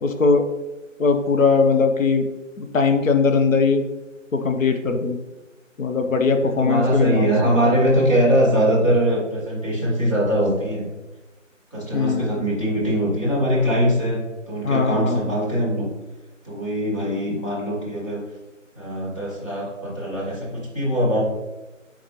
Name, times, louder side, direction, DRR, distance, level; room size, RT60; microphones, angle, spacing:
voice 1, 0.0-0.4 1.0-2.3 2.6-3.8 4.3-5.2 5.8-7.9 11.9-12.4 14.6-15.3, left 4 dB, 80° left, 6 dB, 0.7 m, -20 dB
voice 2, 6.4-10.9 11.7-15.9 16.4-18.2 18.8-21.2, equal, 25° left, -8 dB, 1.1 m, -22 dB
4.4 x 4.0 x 3.0 m, 1.1 s
figure-of-eight pair, 175°, 39 cm